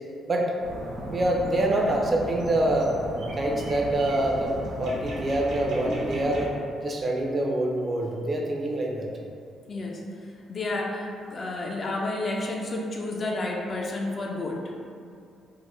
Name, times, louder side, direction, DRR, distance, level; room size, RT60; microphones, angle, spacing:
sound 1, 0.6-6.5, equal, 85° right, 1.0 m, -36 dB
voice 1, 1.1-2.9 3.4-4.5 4.8-6.5 6.8-9.1, right 1 dB, 35° right, 0 dB, 0.5 m, -25 dB
voice 2, 9.7-10.0 10.5-14.7, left 2 dB, 40° left, 0 dB, 0.4 m, -31 dB
3.6 x 2.1 x 3.1 m, 2.4 s
cardioid pair, 90°, 0 cm